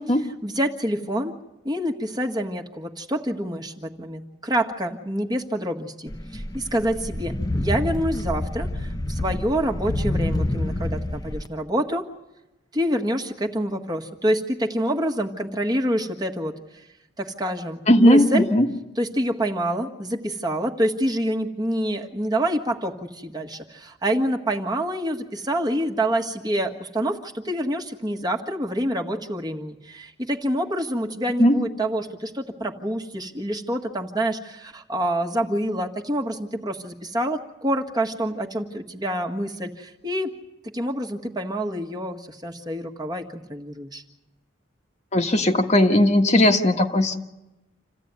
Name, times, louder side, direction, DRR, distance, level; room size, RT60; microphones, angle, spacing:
voice 1, 0.4-1.3 1.6-12.0 12.7-16.8 17.2-18.5 19.0-40.3 40.7-44.0, right 1 dB, 20° right, 2 dB, 1.6 m, -27 dB
sound 1, 6.1-11.5, left 1 dB, 20° left, 0.8 m, -27 dB
voice 2, 17.9-18.7 31.4-31.6 45.1-47.2, left 1 dB, 35° left, 4 dB, 1.5 m, -17 dB
28.0 x 15.0 x 9.6 m, 0.98 s
head